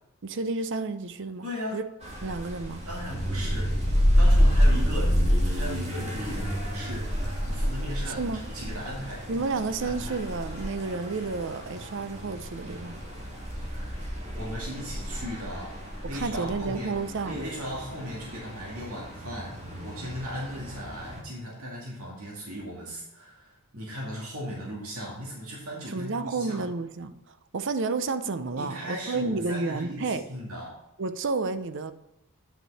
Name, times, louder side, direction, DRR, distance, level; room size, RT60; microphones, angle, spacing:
voice 1, 0.2-1.5 1.7-1.8 2.2-2.9 8.2-8.4 9.3-13.0 16.0-17.4 25.9-30.2 31.0-31.9, right 3 dB, 60° right, 0.6 m, -31 dB
voice 2, 1.4-1.8 2.9-3.8 4.2-7.1 7.4-9.3 9.8-10.1 13.7-14.0 14.4-15.7 16.1-16.9 17.2-19.6 19.8-26.6 28.6-30.8, equal, 80° right, 2.2 m, -37 dB
sound 1, 2.0-21.2, equal, 30° right, 2.1 m, -28 dB
9.4 x 5.5 x 4.1 m
head